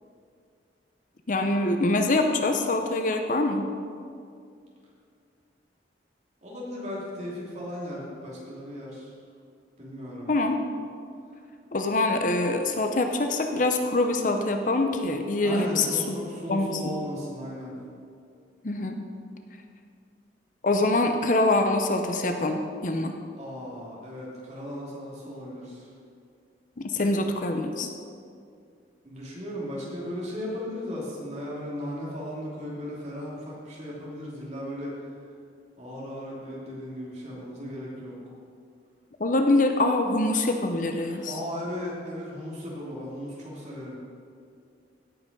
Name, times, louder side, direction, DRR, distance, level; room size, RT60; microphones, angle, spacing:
voice 1, 1.3-3.6 10.3-10.6 11.7-16.2 16.5-16.8 18.6-19.0 20.6-23.1 26.8-27.9 39.2-41.3, left 2 dB, 45° left, 5 dB, 0.7 m, -24 dB
voice 2, 6.4-9.1 9.8-10.3 15.4-17.7 23.3-25.9 29.0-35.2 35.8-38.1 41.0-44.0, equal, 40° right, -5 dB, 2.9 m, -36 dB
16.5 x 5.9 x 5.3 m, 2.3 s
head